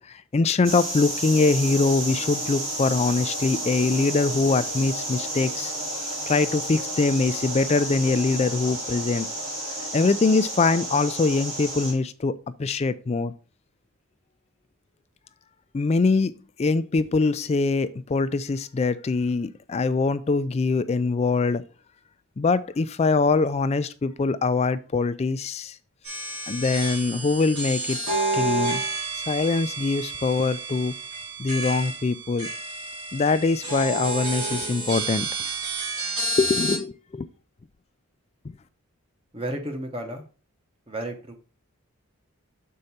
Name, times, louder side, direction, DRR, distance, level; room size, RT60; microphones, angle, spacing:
voice 1, 0.1-5.7 6.3-9.3 9.9-12.3 12.6-13.3 15.7-16.3 16.6-21.6 22.4-25.8 26.5-28.0 28.3-28.8 29.1-30.9 31.4-32.5 33.1-35.3 36.4-37.3, left 3 dB, 30° left, 0.3 m, -23 dB
sound 1, 0.6-11.9, right 1 dB, 60° right, 3.4 m, -31 dB
sound 2, 26.0-36.8, right 2 dB, 75° right, 3.7 m, -30 dB
voice 2, 39.3-40.2 40.9-41.4, right 1 dB, 25° right, 1.0 m, -32 dB
6.5 x 4.6 x 4.2 m
head